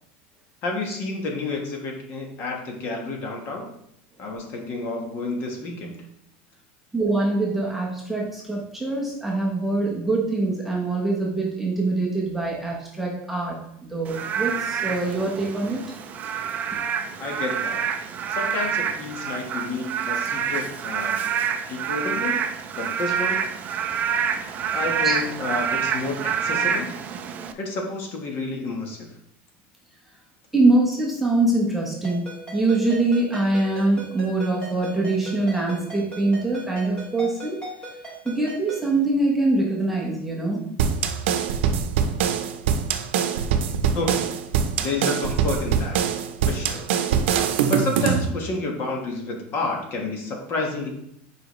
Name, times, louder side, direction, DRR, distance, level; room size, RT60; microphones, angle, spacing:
voice 1, 0.6-3.7 4.2-5.9 17.2-17.8 18.3-21.2 21.7-22.4 22.7-23.4 24.7-26.9 27.5-29.1 43.9-44.3 44.8-46.0 46.4-46.9 47.7-50.9, left 3 dB, 35° left, 1 dB, 1.3 m, -30 dB
voice 2, 6.9-15.8 25.0-25.1 30.5-37.6 38.2-40.7, right 2 dB, 5° right, -4 dB, 1.0 m, -24 dB
Frog / Rain, 14.1-27.5, right 7 dB, 25° right, 0.4 m, -27 dB
Ringtone, 32.0-38.9, right 2 dB, 15° left, 2.6 m, -39 dB
sound 1, 40.8-48.3, right 7 dB, 85° right, 0.6 m, -23 dB
7.5 x 5.0 x 3.1 m, 0.74 s
supercardioid pair, 165°, 6 cm